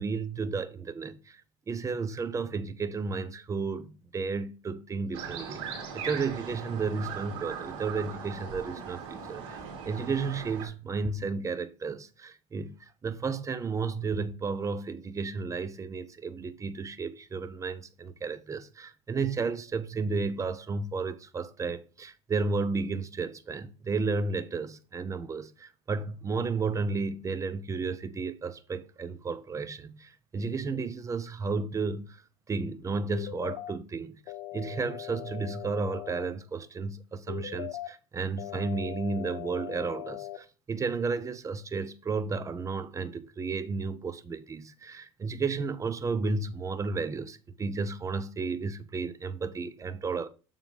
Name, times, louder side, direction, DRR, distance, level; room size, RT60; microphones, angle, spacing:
voice 1, 0.0-1.4 1.7-12.7 13.0-32.2 32.5-34.2 34.5-50.3, right 4 dB, 20° right, 0.7 m, -33 dB
sound 1, 5.1-10.7, right 6 dB, 80° right, 2.2 m, -39 dB
sound 2, 33.1-33.7 34.3-36.3 37.3-37.9 38.4-40.4, left 15 dB, 85° left, 0.7 m, -40 dB
7.1 x 3.7 x 4.9 m
supercardioid pair, 105°, 14 cm